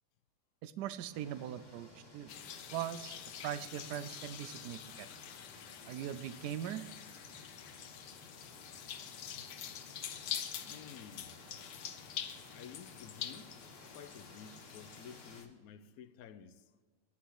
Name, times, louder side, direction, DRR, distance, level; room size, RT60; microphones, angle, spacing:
voice 1, 0.6-2.3 2.7-3.2 3.4-5.1 5.9-6.9, right 10 dB, 80° right, 1.2 m, -40 dB
sound 1, 1.1-15.4, left 1 dB, 25° left, 2.0 m, -57 dB
sound 2, 2.3-15.5, left 9 dB, 90° left, 1.4 m, -46 dB
voice 2, 8.5-8.9 9.4-9.5 10.6-11.6 12.5-16.7, left 7 dB, 65° left, 1.1 m, -53 dB
10.5 x 9.7 x 4.6 m
omnidirectional pair, 1.8 m